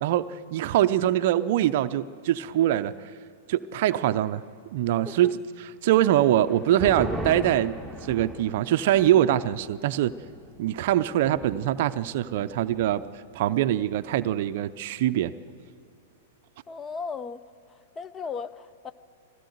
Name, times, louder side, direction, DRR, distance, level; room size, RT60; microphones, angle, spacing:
voice 1, 0.0-3.1 3.5-4.4 4.7-5.4 5.8-7.8 8.0-10.1 10.6-13.0 13.3-15.3, right 12 dB, 55° right, 0.5 m, -23 dB
sound 1, 6.2-13.1 13.4-13.5 13.9-14.4, equal, 5° left, 1.7 m, -39 dB
voice 2, 16.7-17.4 17.7-18.9, left 5 dB, 20° left, 0.8 m, -36 dB
20.5 x 16.5 x 7.9 m
hypercardioid pair, 105°, 0 cm